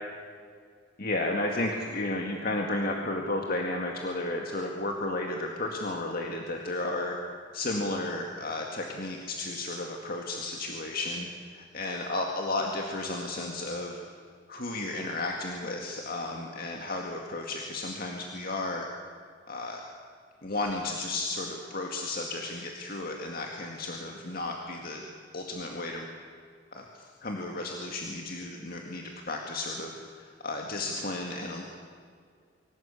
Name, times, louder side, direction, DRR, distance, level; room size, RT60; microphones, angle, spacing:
voice 1, 1.0-7.2 7.5-11.3 11.5-14.0 14.5-18.9 19.5-19.8 20.4-25.0 25.3-26.1 26.7-31.6, left 2 dB, 50° left, 1 dB, 2.1 m, -33 dB
24.5 x 17.5 x 8.5 m, 2.1 s
head